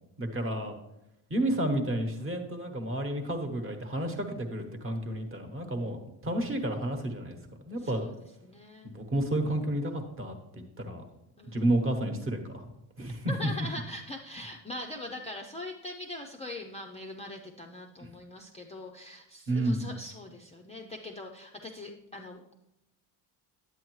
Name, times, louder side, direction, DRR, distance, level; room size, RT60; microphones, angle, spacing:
voice 1, 0.2-0.7 1.3-6.0 6.2-7.4 7.6-8.0 8.8-11.0 11.5-12.7 13.0-13.3 18.0-18.1 19.5-19.9, right 1 dB, 30° right, 4 dB, 1.1 m, -31 dB
voice 2, 7.8-8.1 8.4-8.9 11.4-11.7 13.3-22.5, left 1 dB, 15° left, 1 dB, 0.4 m, -42 dB
9.8 x 8.3 x 3.1 m, 0.87 s
cardioid pair, 140°, 44 cm